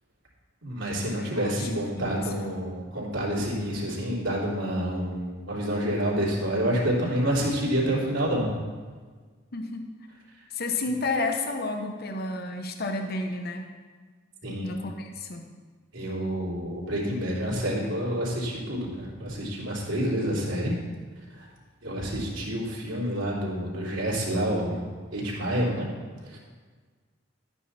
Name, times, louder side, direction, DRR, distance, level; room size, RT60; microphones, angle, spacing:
voice 1, 0.6-8.5 14.4-14.7 15.9-20.7 21.3-21.5 21.8-24.9 25.1-25.9 26.2-26.4, equal, 80° right, -5 dB, 3.3 m, -28 dB
voice 2, 1.2-2.5 9.5-9.8 10.5-13.7 14.6-15.4, left 2 dB, 50° left, 4 dB, 0.9 m, -31 dB
12.5 x 9.2 x 4.2 m, 1.5 s
head